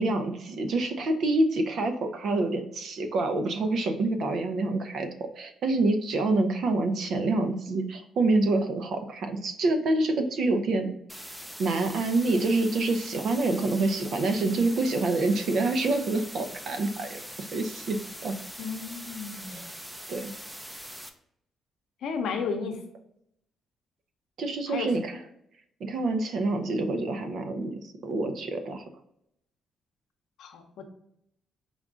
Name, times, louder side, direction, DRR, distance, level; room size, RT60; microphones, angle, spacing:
voice 1, 0.0-5.1 5.3-10.9 11.6-17.2 17.5-18.0 18.2-18.3 19.5-19.8 20.1-20.3 24.4-25.2 25.8-28.8, right 2 dB, 65° right, 7 dB, 0.6 m, -27 dB
sound 1, 11.1-21.1, equal, 5° right, 0.5 m, -42 dB
voice 2, 18.6-19.7 22.0-22.8 24.7-24.9 30.4-30.8, left 5 dB, 75° left, 5 dB, 0.7 m, -33 dB
5.2 x 2.4 x 3.6 m, 0.76 s
cardioid pair, 90°, 0 cm